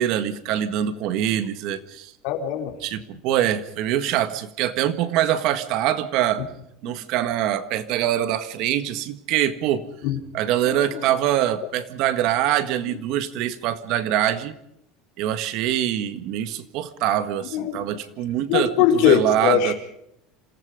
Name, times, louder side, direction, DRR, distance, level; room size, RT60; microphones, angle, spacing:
voice 1, 0.0-2.1 2.8-6.4 6.8-9.8 10.3-14.6 15.2-18.7 19.0-19.7, right 11 dB, 50° right, 11 dB, 1.7 m, -24 dB
voice 2, 2.2-2.7 6.4-6.5 10.0-10.2 10.6-11.1 12.9-13.0 17.5-17.9 18.5-19.7, left 9 dB, 65° left, 3 dB, 4.3 m, -21 dB
27.5 x 18.0 x 5.2 m, 0.78 s
cardioid pair, 160°, 0 cm